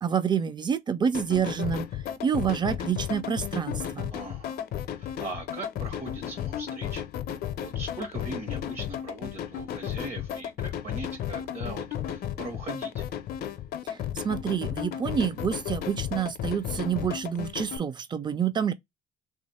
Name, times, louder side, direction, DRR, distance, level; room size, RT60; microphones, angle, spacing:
voice 1, 0.0-1.9 2.2-4.1 13.9-18.7, right 7 dB, 25° right, 0.5 m, -28 dB
sound 1, 1.1-17.8, left 10 dB, 65° left, 0.5 m, -34 dB
voice 2, 4.1-4.7 5.0-7.0 7.6-11.9 12.1-13.1, right 2 dB, 45° right, 1.1 m, -40 dB
3.1 x 2.4 x 4.1 m
cardioid pair, 110°, 17 cm